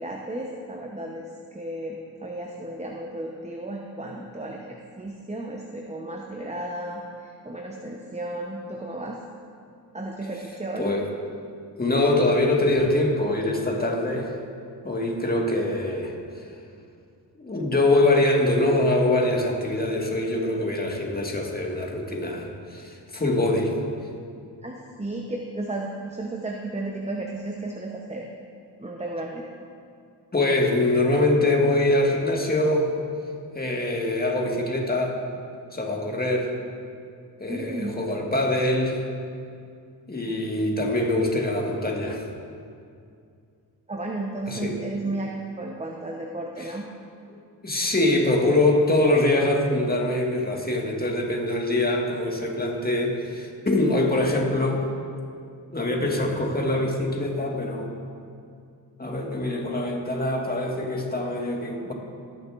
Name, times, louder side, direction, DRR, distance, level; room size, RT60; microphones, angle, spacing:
voice 1, 0.0-9.2 9.9-10.9 24.6-28.3 28.8-29.4 37.5-37.9 43.9-46.9, right 2 dB, 15° right, 0 dB, 0.8 m, -33 dB
voice 2, 10.8-11.1 11.7-14.3 14.8-16.1 17.4-23.7 30.3-32.9 33.5-35.1 35.7-36.5 37.4-39.0 40.1-42.2 44.5-44.7 45.0-45.1 46.6-46.7 47.6-54.8 55.7-57.9 59.0-61.9, left 2 dB, 20° left, 0 dB, 1.6 m, -24 dB
17.5 x 6.6 x 2.5 m, 2.4 s
cardioid pair, 65°, 42 cm